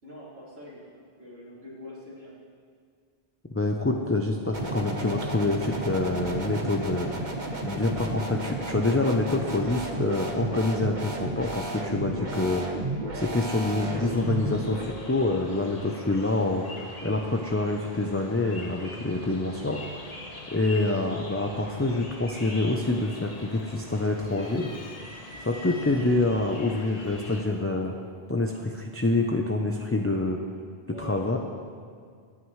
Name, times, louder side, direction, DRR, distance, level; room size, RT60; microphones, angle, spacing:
voice 1, 0.0-2.3 25.9-26.1 30.9-31.4, equal, 80° right, -10 dB, 3.2 m, -45 dB
voice 2, 3.5-7.2 7.6-12.7 13.1-19.8 20.5-24.7 25.4-27.9 28.3-30.4 31.0-31.4, left 2 dB, 15° left, 1 dB, 0.6 m, -26 dB
sound 1, 4.5-14.8, right 2 dB, 45° right, 1.3 m, -33 dB
sound 2, 13.9-27.4, left 2 dB, 40° left, 1.2 m, -44 dB
sound 3, 22.4-22.8 23.2-23.9 24.3-26.2 27.1-27.2 28.4-28.8, left 2 dB, 70° left, 1.6 m, -45 dB
24.0 x 9.2 x 3.3 m, 2.1 s
omnidirectional pair, 1.1 m